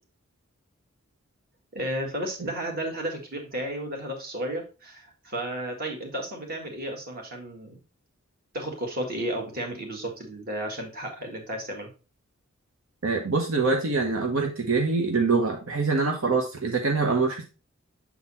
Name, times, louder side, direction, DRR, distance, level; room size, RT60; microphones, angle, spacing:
voice 1, 1.7-7.8 8.5-11.9, right 1 dB, 45° right, 2 dB, 1.9 m, -33 dB
voice 2, 13.0-17.5, right 4 dB, 75° right, 2 dB, 1.0 m, -24 dB
7.3 x 4.0 x 4.1 m, 0.31 s
head